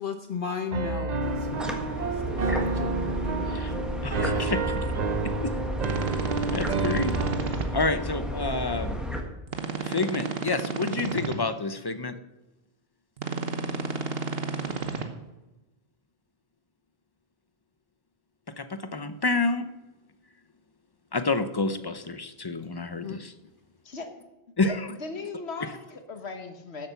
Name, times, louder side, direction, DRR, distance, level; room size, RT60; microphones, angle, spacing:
voice 1, 0.0-3.9 23.0-23.2, left 6 dB, 55° left, 7 dB, 0.9 m, -36 dB
Piano, 0.7-7.6, right 4 dB, 45° right, 0.8 m, -30 dB
sound 1, 1.2-9.2, equal, ahead, 1.5 m, -32 dB
voice 2, 4.0-5.0 5.2-5.5 6.5-7.2 7.7-9.0 9.8-12.1 18.6-19.7 21.1-23.3 24.6-24.9, left 3 dB, 25° left, 10 dB, 0.7 m, -29 dB
sound 2, 5.8-7.6 9.5-11.3 13.2-15.0, right 4 dB, 65° right, 1.3 m, -32 dB
voice 3, 24.6-26.9, left 4 dB, 80° left, 6 dB, 1.6 m, -37 dB
13.0 x 7.6 x 5.9 m, 1.0 s
omnidirectional pair, 1.1 m